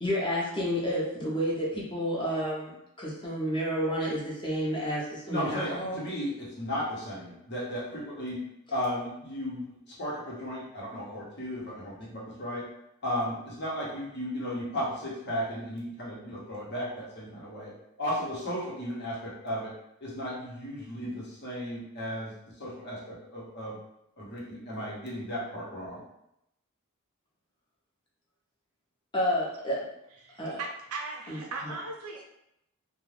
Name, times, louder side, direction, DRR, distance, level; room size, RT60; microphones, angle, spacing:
voice 1, 0.0-6.0 29.1-29.8 30.4-30.6 31.3-31.4, equal, 20° left, -5 dB, 0.8 m, -30 dB
voice 2, 5.3-8.4 8.7-12.6 13.0-17.7 18.0-19.7 20.0-22.3 22.6-23.8 24.2-26.0, equal, 50° left, -5 dB, 1.0 m, -35 dB
voice 3, 30.2-32.2, right 3 dB, 75° right, 0 dB, 0.6 m, -38 dB
2.4 x 2.3 x 3.2 m, 0.80 s
head